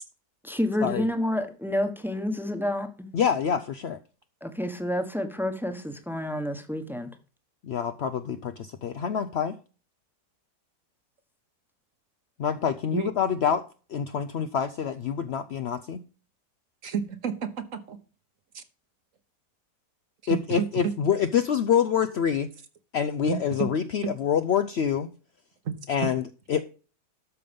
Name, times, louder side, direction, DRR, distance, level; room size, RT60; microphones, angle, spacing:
voice 1, 0.4-3.1 4.4-7.1, left 1 dB, ahead, 1.0 m, -29 dB
voice 2, 3.1-4.0 7.6-9.6 12.4-13.6 13.9-16.0 20.3-22.5 22.9-25.1 25.9-26.2 26.5-26.6, left 8 dB, 75° left, 0.6 m, -26 dB
voice 3, 16.8-18.0 18.5-18.6 20.2-20.9 23.3-23.7 24.0-24.1 25.6-25.7 26.0-26.1, right 7 dB, 55° right, 1.3 m, -30 dB
13.0 x 5.5 x 5.2 m
omnidirectional pair, 1.8 m